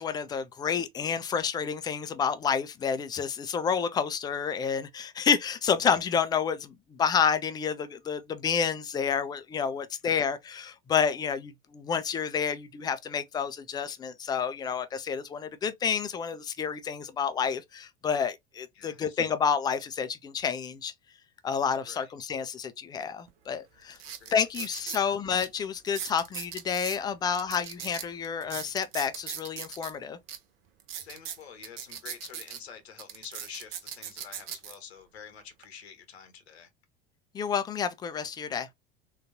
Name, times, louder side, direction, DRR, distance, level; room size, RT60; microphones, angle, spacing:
voice 1, 0.0-20.9 21.4-24.0 24.3-30.2 37.3-38.7, left 7 dB, 15° left, 0.3 m, -29 dB
voice 2, 9.8-10.3 18.7-19.3 21.8-22.1 24.2-25.2 31.0-36.7, left 7 dB, 70° left, 0.8 m, -48 dB
sound 1, 23.3-23.4 23.9-25.0 25.4-25.5 25.9-27.0 27.3-29.9 30.3-30.4 30.8-32.6 33.0-34.7 35.4-35.6, right 9 dB, 60° right, 0.7 m, -39 dB
3.8 x 2.3 x 2.5 m
figure-of-eight pair, 75°, 33 cm